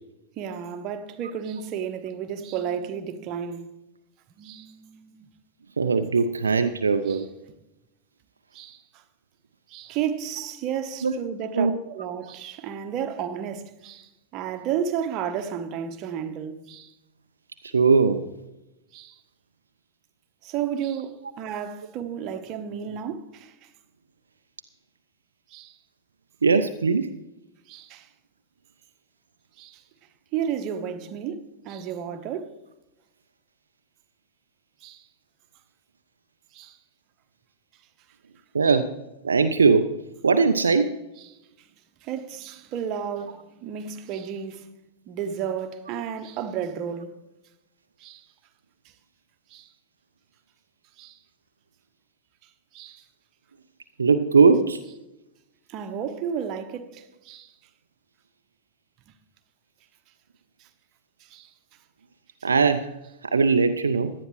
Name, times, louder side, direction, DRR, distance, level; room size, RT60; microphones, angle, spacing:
voice 1, 0.4-3.7 4.4-5.3 7.1-7.3 8.5-9.0 9.7-16.9 18.9-19.2 20.4-23.7 25.5-25.7 27.7-28.1 29.6-29.8 30.3-32.6 34.8-35.0 36.5-36.8 38.6-38.7 41.2-41.3 41.6-41.7 42.0-44.7 45.1-47.2 48.0-48.3 49.5-49.7 51.0-51.2 52.7-53.0 55.7-57.5 60.6-60.7 61.2-61.5, right 8 dB, 40° right, 1.0 m, -32 dB
voice 2, 5.8-7.3 11.0-11.1 11.5-11.7 17.7-18.3 26.4-27.1 38.5-38.9 39.2-39.9 40.2-40.9 54.0-54.8 62.4-62.9 63.2-64.1, right 4 dB, 75° right, 0.5 m, -20 dB
17.0 x 11.0 x 3.1 m
figure-of-eight pair, 90°, 0 cm